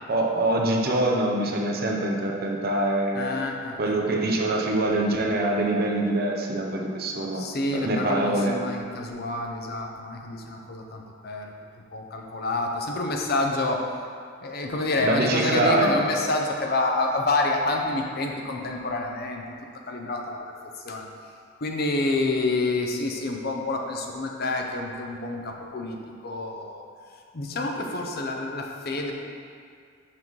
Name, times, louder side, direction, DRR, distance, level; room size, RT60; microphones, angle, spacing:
voice 1, 0.1-3.3 3.8-7.4 7.7-8.6 15.0-16.0, right 1 dB, 50° right, 0 dB, 0.7 m, -24 dB
voice 2, 3.1-3.8 7.3-11.5 11.9-13.9 14.4-19.4 19.9-20.5 20.8-21.1 21.6-26.0 26.2-26.8 27.3-29.1, left 2 dB, 50° left, 2 dB, 0.6 m, -28 dB
5.9 x 5.1 x 3.1 m, 2.2 s
head